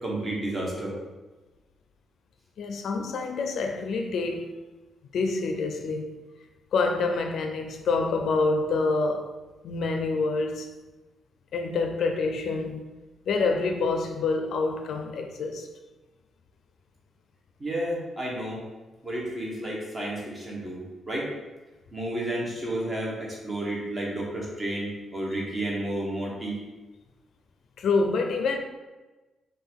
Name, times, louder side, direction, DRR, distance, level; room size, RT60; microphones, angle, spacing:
voice 1, 0.0-0.9 17.6-18.6 19.0-20.8 21.1-21.3 21.9-26.6, right 1 dB, 25° right, 1.2 m, -31 dB
voice 2, 2.6-4.6 5.1-6.1 6.7-9.3 9.6-10.7 11.5-12.8 13.3-15.7 27.8-28.6, left 3 dB, 70° left, 0.4 m, -27 dB
5.3 x 2.6 x 3.7 m
cardioid pair, 130°, 0 cm